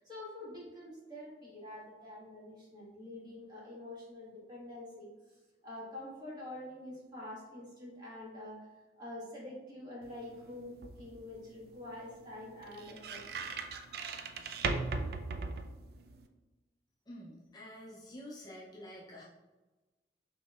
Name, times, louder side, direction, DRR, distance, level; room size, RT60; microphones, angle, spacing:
voice 1, 0.0-5.1 5.6-8.6 9.0-13.2, left 1 dB, 25° right, -6 dB, 1.4 m, -46 dB
sound 1, 10.0-16.3, right 4 dB, 55° right, 0.3 m, -40 dB
voice 2, 17.1-19.2, equal, 20° left, -5 dB, 0.4 m, -48 dB
5.5 x 3.0 x 2.3 m, 1.2 s
head